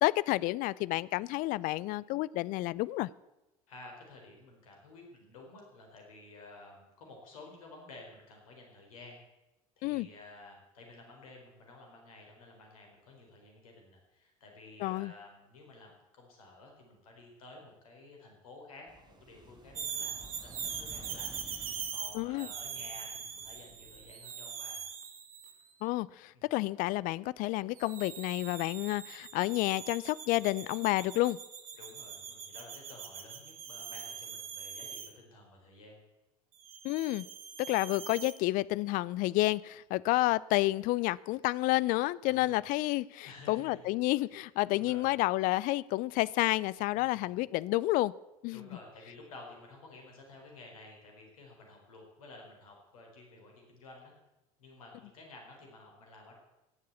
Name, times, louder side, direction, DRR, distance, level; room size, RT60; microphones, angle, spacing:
voice 1, 0.0-3.1 9.8-10.1 14.8-15.1 22.1-22.5 25.8-31.4 36.8-37.3 37.7-48.1 48.4-48.7, left 19 dB, 50° left, 21 dB, 0.5 m, -30 dB
voice 2, 3.7-9.2 9.8-24.8 26.3-26.5 31.8-36.0 42.3-42.6 43.2-43.9 44.3-45.1 46.9-47.5 48.5-54.1 54.6-56.4, left 2 dB, 75° left, 1 dB, 4.4 m, -53 dB
sound 1, 18.9-24.1, right 2 dB, 25° right, 2.2 m, -54 dB
sound 2, 19.8-25.6 27.8-35.1 36.6-38.3, right 7 dB, 75° right, 1.7 m, -42 dB
17.5 x 7.5 x 8.3 m, 0.99 s
figure-of-eight pair, 65°, 18 cm